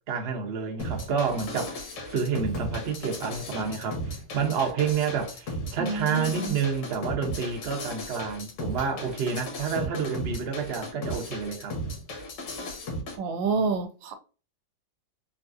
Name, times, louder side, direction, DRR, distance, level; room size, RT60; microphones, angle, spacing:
voice 1, 0.1-11.8, right 6 dB, 60° right, 0.6 m, -29 dB
sound 1, 0.8-13.2, left 1 dB, 80° left, 1.7 m, -36 dB
voice 2, 5.8-6.5 13.2-14.1, right 4 dB, 75° right, 1.3 m, -28 dB
4.0 x 2.4 x 2.6 m
omnidirectional pair, 2.1 m